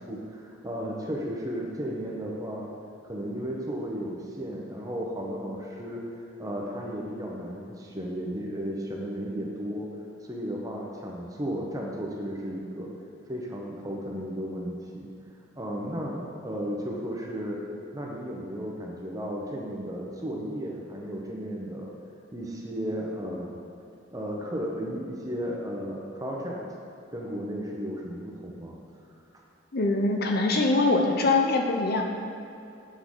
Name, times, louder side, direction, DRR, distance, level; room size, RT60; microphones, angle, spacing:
voice 1, 0.0-2.7 3.0-6.0 6.4-9.9 10.2-12.9 13.3-15.1 15.6-17.6 17.9-21.9 22.3-23.6 24.1-26.6 27.1-28.7, equal, 20° right, -2 dB, 0.9 m, -34 dB
voice 2, 29.7-32.0, left 2 dB, 50° left, 2 dB, 0.7 m, -23 dB
8.3 x 6.7 x 3.8 m, 2.7 s
head